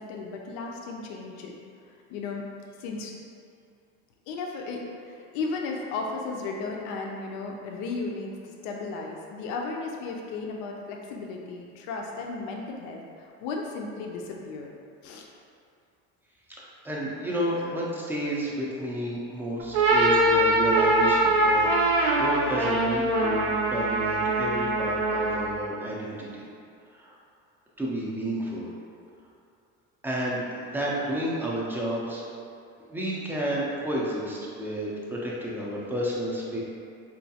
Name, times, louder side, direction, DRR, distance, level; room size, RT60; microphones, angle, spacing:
voice 1, 0.0-1.6 2.1-2.5 2.8-3.2 4.3-14.7 15.0-15.3, left 3 dB, 85° left, 0 dB, 0.5 m, -35 dB
voice 2, 16.5-26.5 26.9-27.2 27.8-28.7 30.0-32.2 32.9-36.6, equal, 5° right, -5 dB, 0.3 m, -31 dB
sound 1, 19.6-25.6, right 1 dB, 65° right, 0.6 m, -23 dB
4.3 x 2.3 x 2.7 m, 2.4 s
cardioid pair, 150°, 30 cm